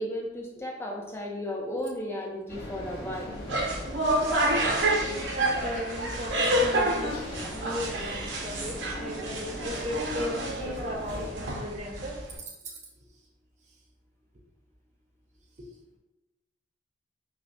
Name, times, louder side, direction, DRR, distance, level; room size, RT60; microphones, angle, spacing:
voice 1, 0.0-3.3, equal, 15° left, 0 dB, 0.5 m, -34 dB
sound 1, 2.5-11.3, left 1 dB, 65° left, 1.1 m, -40 dB
sound 2, 3.3-12.4, right 1 dB, 80° right, 0.7 m, -29 dB
voice 2, 4.4-7.2 7.5-12.2 12.6-12.8 15.6-15.7, equal, 40° right, 0 dB, 0.6 m, -37 dB
5.6 x 2.1 x 2.6 m, 1.0 s
head